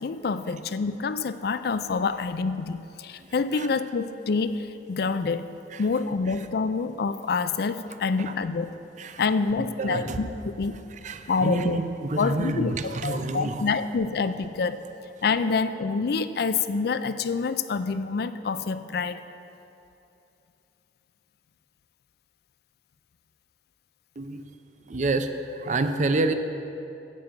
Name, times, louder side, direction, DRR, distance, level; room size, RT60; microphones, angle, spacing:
voice 1, 0.0-5.5 5.8-8.8 9.2-10.3 10.5-10.8 11.3-11.8 12.2-14.8 15.2-19.2, left 4 dB, 60° left, 12 dB, 0.4 m, -27 dB
voice 2, 9.6-10.2 11.0-13.6 24.2-24.4 24.9-26.3, right 2 dB, 45° right, 8 dB, 0.6 m, -28 dB
12.0 x 7.8 x 5.3 m, 2.8 s
head